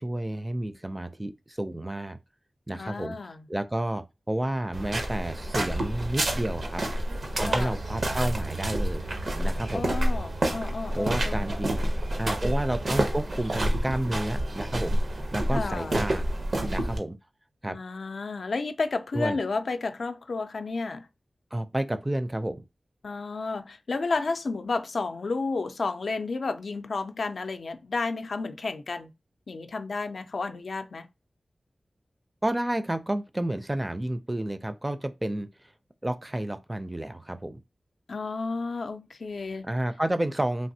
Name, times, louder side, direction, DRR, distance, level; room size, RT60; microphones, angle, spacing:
voice 1, 0.0-2.2 2.7-3.2 3.5-6.8 7.3-9.0 9.4-9.8 11.0-11.8 12.2-16.2 16.7-17.2 17.6-17.8 19.1-19.4 21.5-22.6 32.4-35.5 36.0-37.6 39.6-40.7, right 1 dB, 20° right, 0.4 m, -30 dB
voice 2, 2.7-3.5 7.4-7.8 9.7-11.5 15.5-16.0 17.7-21.1 23.0-29.1 29.5-31.1 38.1-39.7, left 3 dB, 80° left, 0.3 m, -32 dB
sound 1, 4.7-17.0, right 1 dB, 70° right, 0.7 m, -28 dB
3.3 x 2.6 x 2.7 m
cardioid pair, 45°, 0 cm